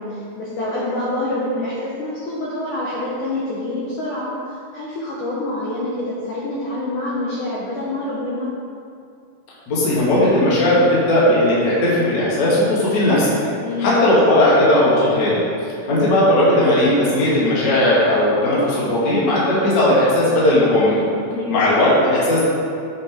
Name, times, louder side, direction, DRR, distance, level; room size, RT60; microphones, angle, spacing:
voice 1, 0.0-8.5 13.6-14.0 21.2-21.7, left 2 dB, 80° left, -6 dB, 1.8 m, -26 dB
voice 2, 9.7-13.3 13.8-21.1 21.5-22.4, left 1 dB, 60° left, -8 dB, 1.2 m, -17 dB
8.1 x 5.3 x 3.6 m, 2.4 s
omnidirectional pair, 5.0 m